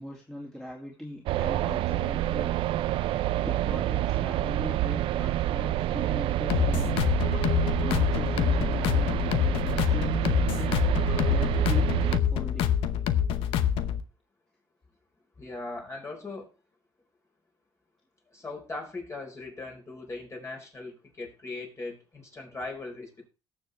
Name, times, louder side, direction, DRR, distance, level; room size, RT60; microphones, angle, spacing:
voice 1, 0.0-2.6 2.9-7.1 7.8-10.8 11.3-12.7, left 1 dB, 5° left, -3 dB, 2.5 m, -40 dB
sound 1, 1.3-12.2, right 14 dB, 80° right, 0.5 m, -28 dB
sound 2, 6.5-14.0, left 9 dB, 90° left, 0.8 m, -26 dB
voice 2, 15.4-16.5 18.3-23.3, left 3 dB, 30° left, 1 dB, 4.4 m, -39 dB
18.0 x 7.1 x 3.3 m, 0.32 s
cardioid pair, 90°, 9 cm